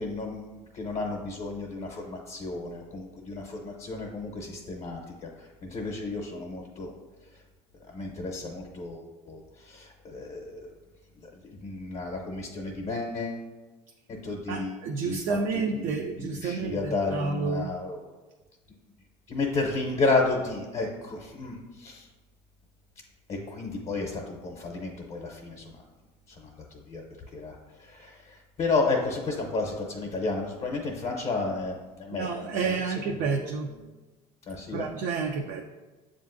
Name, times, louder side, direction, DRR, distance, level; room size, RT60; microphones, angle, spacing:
voice 1, 0.0-6.9 7.9-10.7 11.4-13.4 14.2-15.4 15.7-18.0 19.3-22.1 23.3-25.8 26.3-27.0 27.3-33.5 34.5-34.9, left 3 dB, 45° left, 0 dB, 0.7 m, -32 dB
voice 2, 14.5-17.7 32.1-33.7 34.7-35.6, right 4 dB, 60° right, 3 dB, 0.4 m, -30 dB
7.1 x 2.5 x 2.5 m, 1.2 s
supercardioid pair, 90°, 15 cm